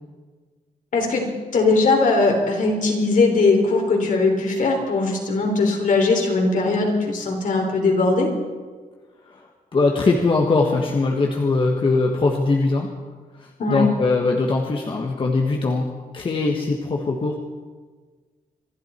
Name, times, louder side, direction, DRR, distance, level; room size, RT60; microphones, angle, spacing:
voice 1, 0.9-1.2 1.5-8.3 13.6-13.9, left 3 dB, 65° left, 1 dB, 3.6 m, -19 dB
voice 2, 9.7-12.9 13.4-17.4, left 3 dB, 35° left, 0 dB, 1.5 m, -21 dB
26.0 x 12.0 x 4.4 m, 1.4 s
wide cardioid pair, 130°, 15 cm